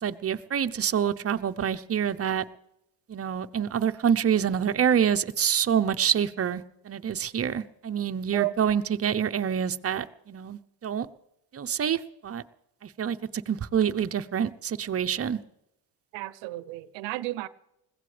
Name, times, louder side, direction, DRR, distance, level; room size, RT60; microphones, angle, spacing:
voice 1, 0.0-2.4 3.1-11.1 11.5-12.4 12.8-15.4, right 8 dB, 35° right, 0.8 m, -27 dB
voice 2, 16.1-17.5, right 18 dB, 85° right, 0.7 m, -32 dB
21.0 x 16.0 x 3.4 m
cardioid pair, 85°, 44 cm